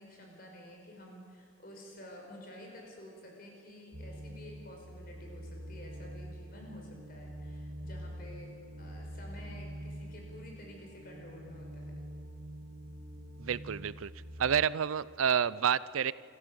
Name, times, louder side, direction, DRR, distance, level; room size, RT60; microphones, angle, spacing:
voice 1, 0.0-12.0, left 1 dB, 45° left, 1 dB, 5.1 m, -50 dB
sound 1, 3.9-14.7, equal, 55° right, 1.6 m, -45 dB
voice 2, 13.4-14.1 14.4-16.1, right 8 dB, 85° right, 19 dB, 0.5 m, -29 dB
27.0 x 13.5 x 7.9 m, 2.6 s
head